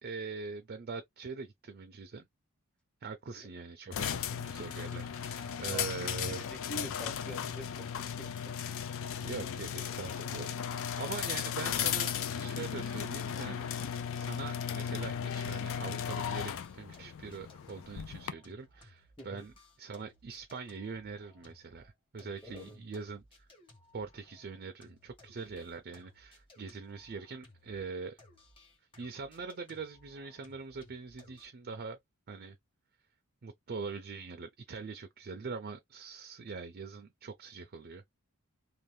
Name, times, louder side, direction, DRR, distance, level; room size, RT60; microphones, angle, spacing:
voice 1, 0.0-2.3 3.0-6.4 9.2-13.8 14.2-19.5 19.8-23.5 23.9-28.2 29.0-32.0 32.3-32.6 33.4-38.1, right 4 dB, 45° right, 0.5 m, -43 dB
sound 1, 3.9-18.3, left 8 dB, 60° left, 0.4 m, -36 dB
voice 2, 5.4-8.6 19.2-19.5 22.4-22.8, equal, 5° left, 0.7 m, -46 dB
sound 2, 13.6-15.9 16.2-27.9 28.2-31.5, left 1 dB, 25° left, 1.2 m, -61 dB
2.7 x 2.2 x 3.2 m
head